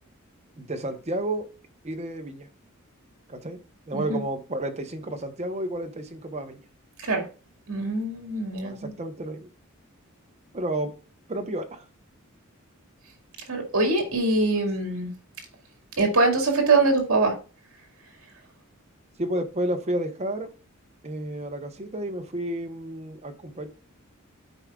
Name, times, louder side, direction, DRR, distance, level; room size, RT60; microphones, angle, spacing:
voice 1, 0.6-1.5 1.8-2.5 3.3-3.6 3.9-6.6 8.5-9.5 10.5-10.9 11.3-11.8 19.2-20.5 21.0-23.7, right 1 dB, 30° right, 5 dB, 1.0 m, -31 dB
voice 2, 7.7-8.9 13.5-15.1 16.0-17.4, right 3 dB, 70° right, 3 dB, 2.2 m, -23 dB
13.0 x 4.8 x 2.4 m, 0.34 s
head